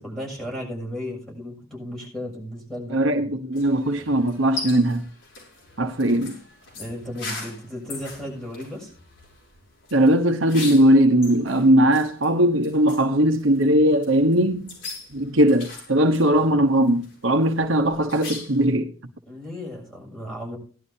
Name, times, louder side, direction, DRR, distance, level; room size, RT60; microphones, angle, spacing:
voice 1, 0.0-3.3 6.7-8.9 19.3-20.6, left 1 dB, ahead, 7.0 m, -35 dB
voice 2, 2.9-5.0 5.8-6.4 9.9-14.8 15.1-18.9, right 1 dB, 70° right, 1.2 m, -19 dB
sound 1, 3.5-18.7, left 3 dB, 60° left, 6.4 m, -40 dB
18.0 x 11.5 x 2.8 m
head